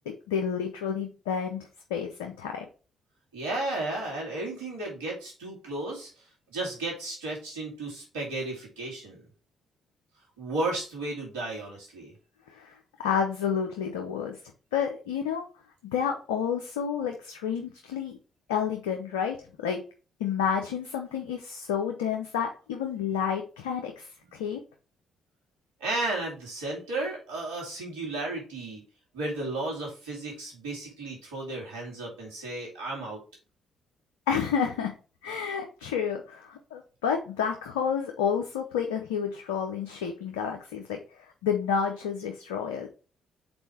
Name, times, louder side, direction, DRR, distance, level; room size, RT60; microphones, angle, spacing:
voice 1, 0.3-2.7 12.5-14.4 14.7-15.4 15.9-18.2 18.5-19.8 20.2-24.6 34.3-34.9 35.2-42.9, left 7 dB, 90° left, 3 dB, 0.7 m, -30 dB
voice 2, 3.3-6.1 6.5-9.3 10.4-12.1 25.8-28.8 29.1-33.2, right 2 dB, 85° right, -2 dB, 2.5 m, -33 dB
5.3 x 4.3 x 4.4 m, 0.35 s
hypercardioid pair, 45°, 0 cm